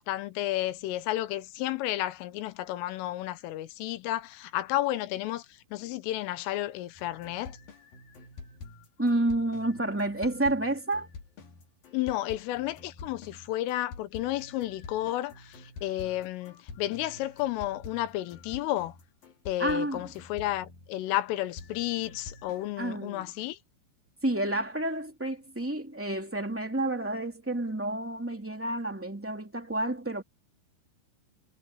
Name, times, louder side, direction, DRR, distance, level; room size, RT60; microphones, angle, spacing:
voice 1, 0.0-7.6 11.9-19.0 19.5-23.6, left 15 dB, 85° left, 3.7 m, -32 dB
sound 1, 6.9-21.2 21.6-22.7, left 4 dB, 50° left, 4.7 m, -47 dB
voice 2, 9.0-11.1 19.6-20.0 22.8-23.2 24.2-30.2, right 1 dB, 5° right, 1.2 m, -30 dB
omnidirectional pair, 5.7 m